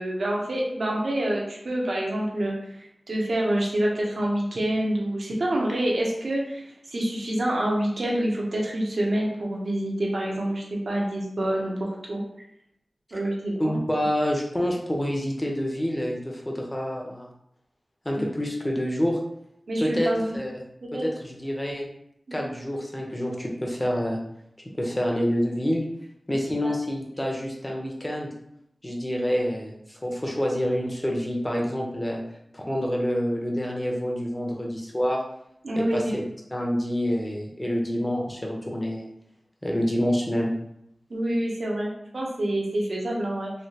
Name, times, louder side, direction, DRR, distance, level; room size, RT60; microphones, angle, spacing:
voice 1, 0.0-2.8 3.1-12.2 13.1-13.8 18.1-18.3 19.7-20.3 20.8-21.1 22.4-22.5 26.6-26.7 35.6-36.0 41.1-43.5, right 1 dB, 75° right, -2 dB, 0.8 m, -27 dB
voice 2, 13.6-17.3 18.0-19.2 19.8-20.1 20.3-20.5 20.9-21.9 22.3-24.2 24.7-25.8 26.3-28.3 28.8-32.2 32.5-35.2 35.8-36.2 36.5-39.1 39.6-40.5, equal, 20° left, -1 dB, 0.7 m, -27 dB
3.2 x 2.8 x 2.8 m, 0.76 s
wide cardioid pair, 80°, 0 cm